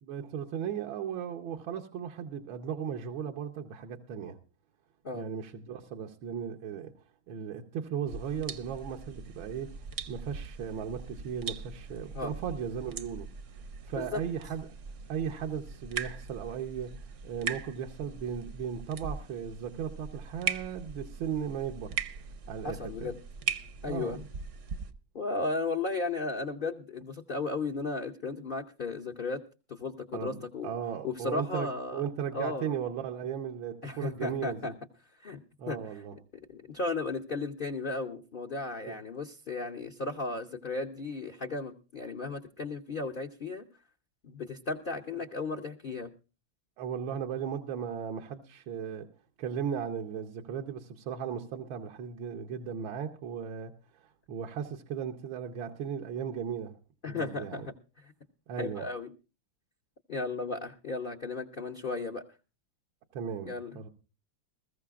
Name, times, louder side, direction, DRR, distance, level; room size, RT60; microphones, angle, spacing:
voice 1, 0.0-4.4 5.1-6.9 7.3-9.7 10.1-13.3 13.9-14.7 15.1-16.9 17.2-21.9 22.5-23.1 23.9-24.2 30.1-34.7 35.6-36.1 38.9-39.0 45.2-45.3 46.8-49.1 49.4-53.7 54.3-56.7 57.1-57.7 58.5-58.9 63.1-63.9, right 7 dB, 90° right, 1.7 m, -36 dB
sound 1, 8.1-24.9, right 6 dB, 60° right, 0.8 m, -40 dB
voice 2, 22.6-23.2 23.8-24.2 25.1-29.4 29.7-30.7 31.0-32.0 32.3-32.7 33.8-34.7 35.2-35.4 35.7-35.8 36.5-43.7 44.2-46.1 57.0-58.1 58.6-59.1 60.1-62.2 63.5-63.8, left 3 dB, 75° left, 0.4 m, -35 dB
21.0 x 14.0 x 2.4 m
omnidirectional pair, 2.1 m